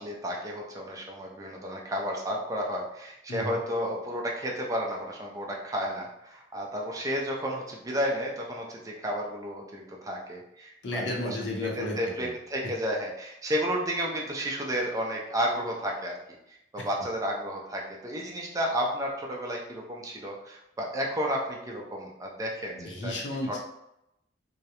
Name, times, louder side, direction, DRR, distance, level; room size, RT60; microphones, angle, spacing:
voice 1, 0.0-11.3 11.8-16.2 16.7-23.1, equal, 20° right, -1 dB, 0.4 m, -32 dB
voice 2, 3.3-3.6 10.8-12.3 12.6-12.7 16.8-16.9 22.7-23.6, left 1 dB, 70° left, 0 dB, 0.6 m, -33 dB
2.3 x 2.0 x 2.8 m, 0.84 s
head